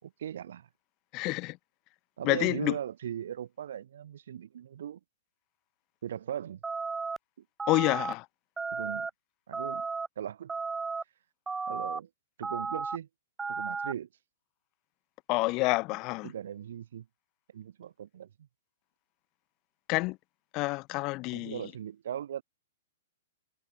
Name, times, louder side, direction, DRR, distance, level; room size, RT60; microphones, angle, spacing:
voice 1, 0.0-0.7 2.2-5.0 6.0-6.6 7.4-7.5 8.7-9.1 9.5-9.9 10.2-10.5 11.7-12.1 12.4-13.1 13.5-14.1 16.2-17.1 17.5-18.5 21.3-22.4, right 10 dB, 70° right, 5.9 m, -39 dB
voice 2, 1.1-1.6 2.2-2.7 7.7-8.3 15.3-16.3 19.9-20.2 20.5-21.6, left 23 dB, 30° left, 1.1 m, -28 dB
sound 1, 6.6-7.2 7.6-8.1 8.6-9.1 9.5-10.1 10.5-11.0 11.5-12.0 12.4-13.0 13.4-13.9, right 4 dB, 10° right, 1.0 m, -34 dB
hypercardioid pair, 155°, 0 cm